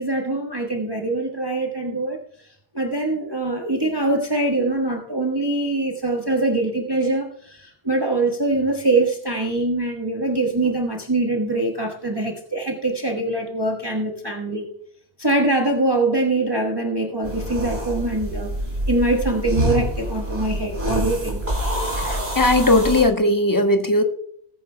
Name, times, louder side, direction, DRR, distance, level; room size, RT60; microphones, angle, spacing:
voice 1, 0.0-2.2 2.7-14.7 15.2-18.5 18.9-21.4, right 2 dB, 20° right, 0 dB, 1.3 m, -23 dB
sound 1, 17.2-23.0, equal, 65° right, 4.5 m, -26 dB
voice 2, 22.0-24.0, left 1 dB, 20° left, 6 dB, 0.9 m, -18 dB
20.5 x 9.9 x 2.2 m, 0.66 s
omnidirectional pair, 1.1 m